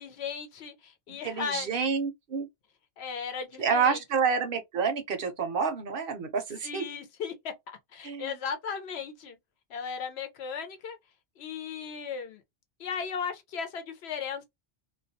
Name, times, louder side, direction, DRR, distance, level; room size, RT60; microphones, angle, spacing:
voice 1, 0.0-1.7 3.0-4.0 6.6-7.3 7.9-9.4 9.7-11.0 11.4-12.4 12.8-14.4, left 6 dB, 75° left, 0.9 m, -36 dB
voice 2, 1.1-2.5 3.6-6.8 8.0-8.3, right 5 dB, 60° right, 0.7 m, -28 dB
2.3 x 2.1 x 2.6 m
omnidirectional pair, 1.1 m